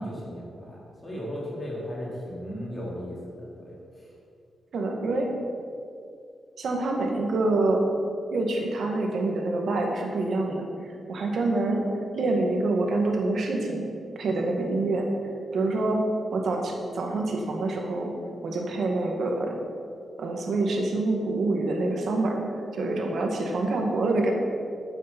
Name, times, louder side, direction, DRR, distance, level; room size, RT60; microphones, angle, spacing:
voice 1, 0.0-4.1, equal, 20° left, -5 dB, 3.2 m, -36 dB
voice 2, 4.7-5.3 6.6-7.8 8.3-10.7 11.1-11.9 12.1-13.9 14.2-15.1 15.5-16.0 16.3-18.1 18.4-19.5 20.2-22.4 22.7-24.3, right 2 dB, 65° right, 1 dB, 1.8 m, -26 dB
9.2 x 8.7 x 6.0 m, 2.4 s
wide cardioid pair, 120°, 0 cm